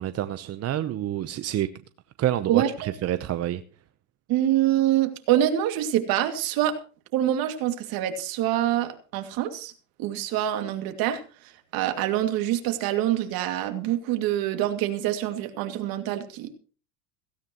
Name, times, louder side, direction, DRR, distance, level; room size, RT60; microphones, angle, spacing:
voice 1, 0.0-1.7 2.2-3.6, right 12 dB, 35° right, 12 dB, 0.9 m, -28 dB
voice 2, 2.5-2.9 4.3-6.8 7.1-9.7 10.0-16.5, right 12 dB, 60° right, 7 dB, 2.5 m, -25 dB
17.0 x 16.5 x 3.1 m, 0.37 s
supercardioid pair, 100°, 41 cm